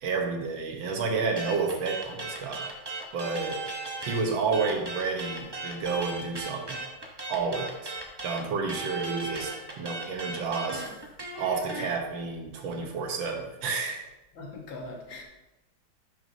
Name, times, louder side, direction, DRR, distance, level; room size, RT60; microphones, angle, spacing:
voice 1, 0.0-2.7 3.1-3.6 4.0-6.8 7.3-7.9 8.2-10.9 11.4-14.0, right 4 dB, 80° right, 3 dB, 1.8 m, -30 dB
sound 1, 1.4-4.2 4.5-11.9, right 2 dB, 25° right, 0.6 m, -37 dB
voice 2, 4.5-4.8 10.7-10.9 11.7-11.9 14.3-15.2, left 3 dB, 85° left, 0 dB, 2.1 m, -41 dB
10.5 x 6.1 x 2.7 m, 1.0 s
omnidirectional pair, 2.1 m